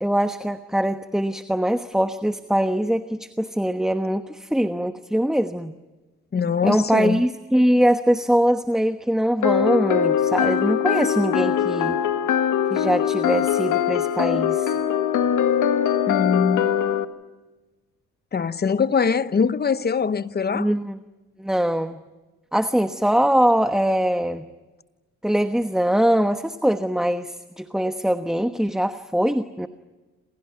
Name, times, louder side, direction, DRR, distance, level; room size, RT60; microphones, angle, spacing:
voice 1, 0.0-5.7 6.6-12.0 12.7-14.7 20.5-21.0 21.4-22.0 22.5-24.4 25.2-29.7, equal, ahead, 1.1 m, -22 dB
voice 2, 6.3-7.2 16.1-16.7 18.3-20.7, left 6 dB, 35° left, 1.0 m, -22 dB
sound 1, 9.4-17.0, left 9 dB, 80° left, 1.6 m, -22 dB
28.0 x 28.0 x 5.9 m
cardioid pair, 90°, 30 cm